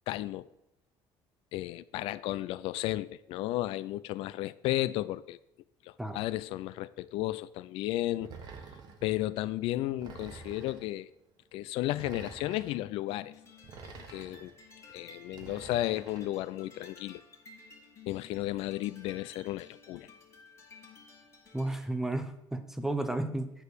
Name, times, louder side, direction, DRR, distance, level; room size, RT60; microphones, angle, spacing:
voice 1, 0.1-0.5 1.5-5.4 5.8-8.3 9.0-11.1 11.5-13.3 13.9-14.5 14.9-17.2 18.1-20.1, left 15 dB, 70° left, 0.3 m, -33 dB
sound 1, 8.2-9.1 10.0-10.9 11.9-12.8 13.6-14.5 15.3-16.3, right 5 dB, 45° right, 1.2 m, -48 dB
sound 2, 13.1-21.9, left 4 dB, 30° left, 1.4 m, -55 dB
voice 2, 21.5-23.5, right 2 dB, 5° right, 0.6 m, -33 dB
8.9 x 4.6 x 6.6 m
cardioid pair, 165°, 10 cm